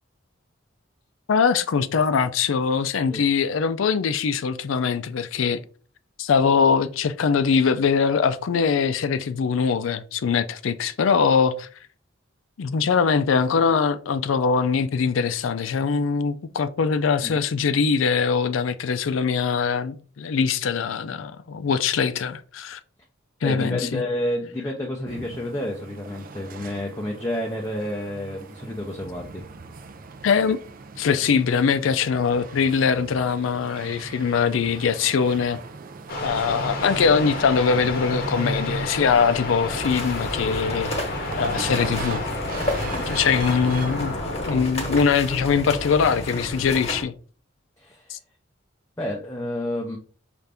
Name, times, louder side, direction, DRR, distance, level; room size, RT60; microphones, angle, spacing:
voice 1, 1.3-5.6 6.2-11.7 12.6-22.8 23.4-24.0 30.2-30.6 31.0-35.6 36.2-40.9 41.4-42.2 42.8-44.1 44.5-47.1 48.1-48.2, left 6 dB, 80° left, 0.4 m, -22 dB
voice 2, 23.4-29.4 47.8-48.1 49.0-50.0, left 1 dB, 15° left, 0.6 m, -30 dB
sound 1, 25.1-44.1, right 3 dB, 45° right, 0.4 m, -38 dB
sound 2, 36.1-44.6, left 2 dB, 50° left, 0.9 m, -31 dB
sound 3, 39.7-47.0, left 1 dB, 35° left, 1.2 m, -31 dB
5.6 x 2.5 x 3.4 m
head